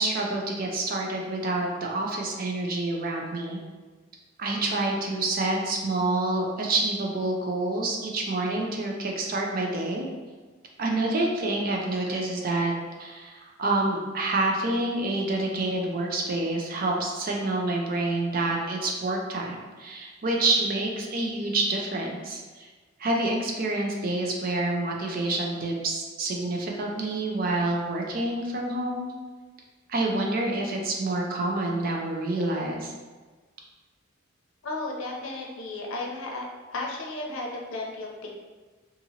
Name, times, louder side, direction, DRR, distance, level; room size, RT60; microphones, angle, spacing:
voice 1, 0.0-3.6 4.4-10.1 10.8-12.7 13.0-22.7 23.0-29.1 29.9-32.9, right 2 dB, 45° right, 0 dB, 0.4 m, -27 dB
voice 2, 34.6-36.4 36.7-38.3, left 2 dB, 85° left, -1 dB, 0.6 m, -34 dB
2.8 x 2.5 x 2.8 m, 1.3 s
head